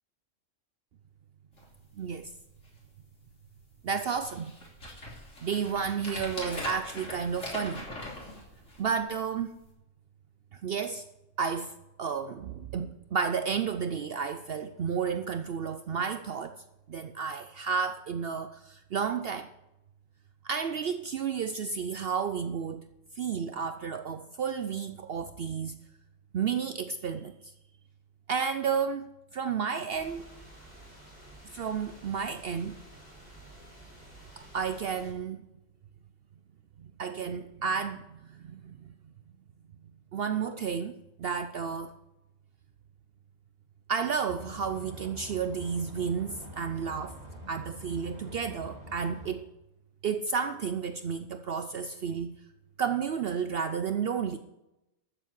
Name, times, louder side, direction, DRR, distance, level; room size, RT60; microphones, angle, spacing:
sound 1, 1.5-1.7 2.2-2.3 2.5-3.0 3.7-3.8 4.2-9.1 9.6-9.7, left 1 dB, 85° left, 3.5 m, -41 dB
voice 1, 2.0-2.3 3.8-4.5 5.4-7.9 8.8-9.6 10.5-11.0 11.4-11.7 12.0-19.5 20.4-22.9 23.1-25.8 26.3-27.5 28.3-30.3 31.5-32.8 34.4-35.4 36.8-38.9 40.1-41.9 43.9-47.2 47.5-49.5 50.0-52.4 52.8-54.4, right 6 dB, 60° right, 0.7 m, -32 dB
sound 2, 29.9-35.1, right 1 dB, 10° right, 4.0 m, -51 dB
sound 3, 44.3-49.3, equal, 30° right, 3.1 m, -45 dB
13.5 x 7.2 x 7.4 m
omnidirectional pair, 1.3 m